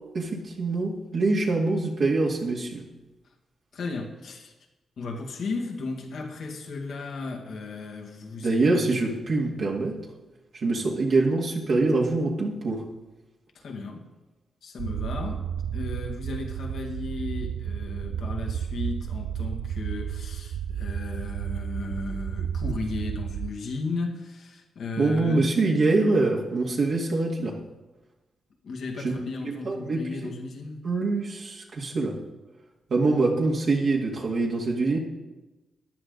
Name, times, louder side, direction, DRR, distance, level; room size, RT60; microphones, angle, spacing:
voice 1, 0.1-2.8 8.4-10.0 10.5-12.8 25.0-27.6 29.0-29.1 29.4-30.3 30.8-32.2 32.9-35.0, right 3 dB, 60° right, -2 dB, 2.0 m, -24 dB
voice 2, 3.7-4.5 5.0-8.6 13.5-14.1 14.6-15.5 15.7-25.4 28.6-30.9, left 3 dB, 75° left, 2 dB, 2.1 m, -35 dB
sound 1, 14.8-23.5, right 9 dB, 85° right, 0.4 m, -32 dB
14.0 x 10.0 x 4.0 m, 1.1 s
cardioid pair, 65°, 0 cm